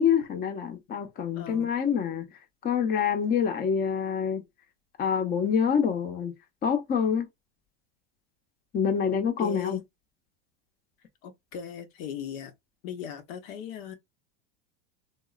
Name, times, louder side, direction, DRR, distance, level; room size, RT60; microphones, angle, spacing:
voice 1, 0.0-2.3 2.6-4.4 5.0-6.3 6.6-7.2 8.7-9.8, left 7 dB, 30° left, 0.7 m, -26 dB
voice 2, 1.3-1.7 9.4-9.8 11.2-12.5 12.8-13.9, left 9 dB, 65° left, 0.7 m, -38 dB
3.6 x 2.0 x 2.4 m
supercardioid pair, 115°, 33 cm